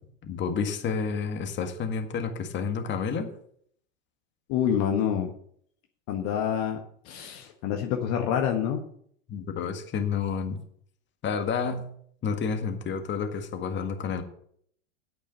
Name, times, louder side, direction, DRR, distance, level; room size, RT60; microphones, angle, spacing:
voice 1, 0.2-3.3 9.3-10.6 11.2-11.9 12.2-14.2, left 6 dB, 30° left, 6 dB, 1.8 m, -30 dB
voice 2, 4.5-5.3 6.1-8.8, left 9 dB, 50° left, 3 dB, 1.4 m, -27 dB
9.6 x 8.3 x 5.6 m, 0.64 s
hypercardioid pair, 95°, 36 cm